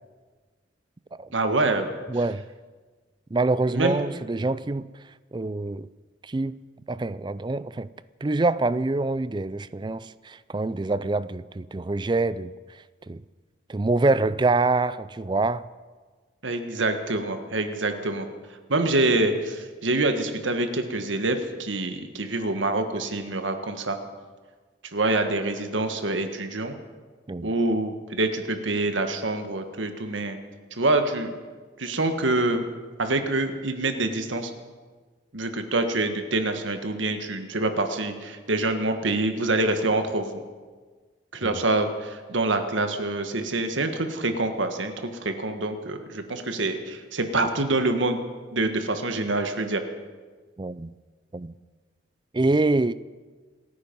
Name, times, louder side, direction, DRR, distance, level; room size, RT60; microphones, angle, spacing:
voice 1, 1.3-1.9 3.7-4.0 16.4-18.3 18.7-24.0 24.9-26.7 27.4-30.4 30.7-31.3 31.8-32.6 33.0-34.5 35.3-40.4 41.3-48.2 48.5-49.8, right 2 dB, 85° right, 1.5 m, -26 dB
voice 2, 2.1-2.4 3.3-4.9 5.3-5.9 6.2-6.6 6.9-7.9 8.2-12.5 13.1-13.2 13.7-15.7 27.3-27.5 41.4-41.5 50.6-50.9 51.3-51.5 52.3-52.9, right 2 dB, 25° right, 0.4 m, -25 dB
28.0 x 9.6 x 5.4 m
head